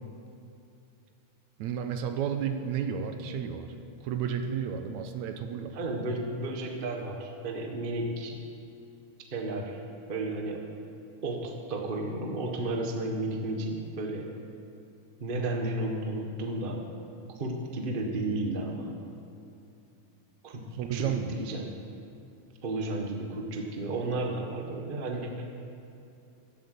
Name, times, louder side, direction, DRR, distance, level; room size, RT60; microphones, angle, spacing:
voice 1, 1.6-3.7 4.0-5.7 20.8-21.3, right 8 dB, 75° right, 7 dB, 2.0 m, -32 dB
voice 2, 5.7-8.4 9.3-9.8 10.1-10.7 11.2-14.3 15.2-16.9 17.4-18.9 20.4-20.7 20.9-21.8 22.6-25.4, right 2 dB, 55° right, 2 dB, 0.5 m, -33 dB
15.0 x 8.0 x 8.2 m, 2.7 s
omnidirectional pair, 3.5 m